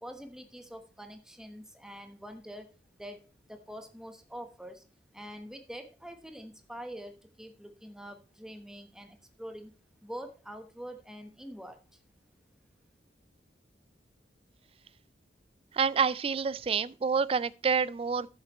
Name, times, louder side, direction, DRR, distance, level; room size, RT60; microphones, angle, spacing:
voice 1, 0.0-4.8 5.1-9.7 10.0-12.0, equal, 5° right, 1.1 m, -45 dB
voice 2, 15.7-18.3, right 6 dB, 30° right, 0.3 m, -28 dB
12.5 x 7.3 x 3.1 m
head